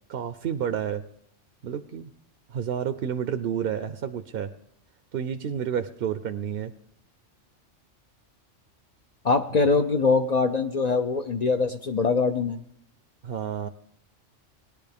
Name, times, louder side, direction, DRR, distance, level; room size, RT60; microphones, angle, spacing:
voice 1, 0.1-1.0 1.6-2.1 2.5-4.5 5.1-6.7 13.2-13.7, right 8 dB, 60° right, 9 dB, 0.7 m, -30 dB
voice 2, 9.2-12.6, left 4 dB, 55° left, 7 dB, 0.5 m, -23 dB
18.5 x 10.0 x 3.5 m, 0.69 s
omnidirectional pair, 1.3 m